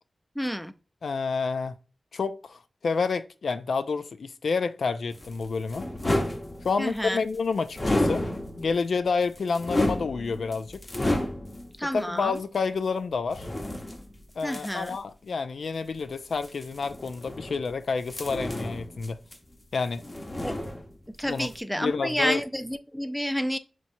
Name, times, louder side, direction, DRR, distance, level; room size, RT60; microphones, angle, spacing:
voice 1, 0.4-0.7 6.8-7.2 11.8-12.4 14.4-15.0 20.4-20.6 21.1-23.6, equal, 5° left, 0.5 m, -29 dB
voice 2, 1.0-1.7 2.1-5.9 6.6-8.2 8.6-10.8 11.9-13.5 14.4-19.2 19.7-20.0 21.2-21.5 21.8-22.4, left 4 dB, 85° left, 0.4 m, -29 dB
sound 1, 5.1-7.0 7.7-8.8 9.2-11.7 12.4-12.5 13.3-15.0 16.3-17.7 18.1-19.7 19.9-21.1 21.4-21.6, left 1 dB, 35° left, 1.0 m, -31 dB
5.8 x 3.0 x 2.6 m
wide cardioid pair, 70°, 0 cm